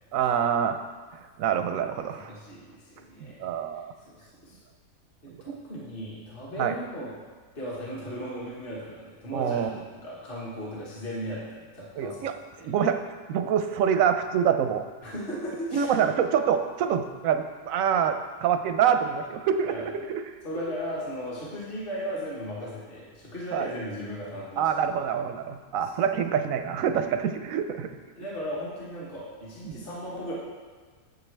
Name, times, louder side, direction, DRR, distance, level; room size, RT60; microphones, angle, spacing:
voice 1, 0.1-0.8 1.4-2.3 3.2-3.9 6.6-6.7 9.3-9.7 12.0-12.3 12.6-13.0 13.3-14.8 15.7-20.2 23.5-23.7 24.6-27.9 29.6-29.9, right 8 dB, 70° right, 8 dB, 0.9 m, -26 dB
voice 2, 2.1-3.5 4.0-4.6 5.2-7.1 7.5-9.6 9.9-12.2 12.6-12.7 15.0-15.9 19.7-19.9 20.4-24.9 25.8-25.9 28.1-30.3, equal, 35° left, -6 dB, 1.6 m, -36 dB
9.2 x 7.4 x 3.3 m, 1.5 s
omnidirectional pair, 1.7 m